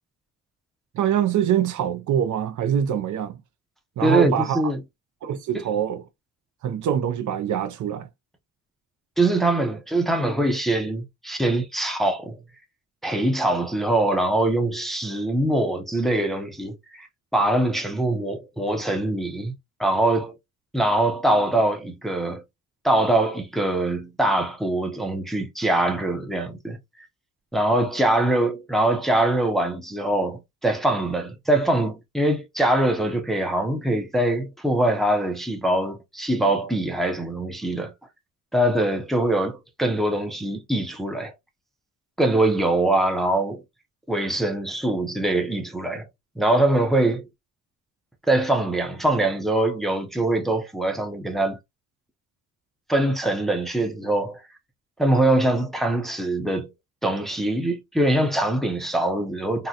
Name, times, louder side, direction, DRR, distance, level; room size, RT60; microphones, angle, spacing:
voice 1, 0.9-3.4 4.0-4.6 5.2-6.0 6.6-8.1, right 9 dB, 65° right, 0.5 m, -24 dB
voice 2, 4.0-4.8 5.5-5.6 9.2-12.4 13.0-17.1 17.3-19.5 19.8-20.3 20.7-22.4 22.8-26.8 27.5-37.9 38.5-41.3 42.2-43.6 44.1-46.1 46.4-47.2 48.3-51.6 52.9-54.4 55.0-56.7 57.0-59.7, right 1 dB, ahead, 0.5 m, -23 dB
3.8 x 2.1 x 2.7 m
wide cardioid pair, 135°, 33 cm